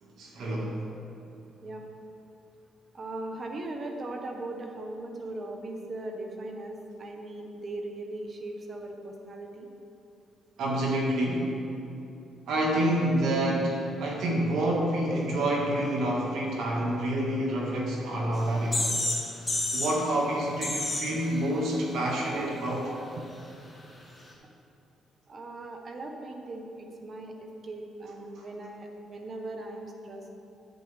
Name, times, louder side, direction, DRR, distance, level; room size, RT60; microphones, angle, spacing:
voice 1, 0.2-0.8 10.6-11.6 12.5-18.9 19.7-22.9 28.4-28.5, right 1 dB, 75° right, -2 dB, 1.8 m, -28 dB
voice 2, 2.9-9.7 25.3-30.2, right 2 dB, 40° right, 3 dB, 1.3 m, -39 dB
sound 1, 18.4-18.5 18.7-19.2 19.5-19.9 20.6-21.1, left 1 dB, 15° left, 2.2 m, -28 dB
11.0 x 8.6 x 3.5 m, 2.8 s
cardioid pair, 90°, 0 cm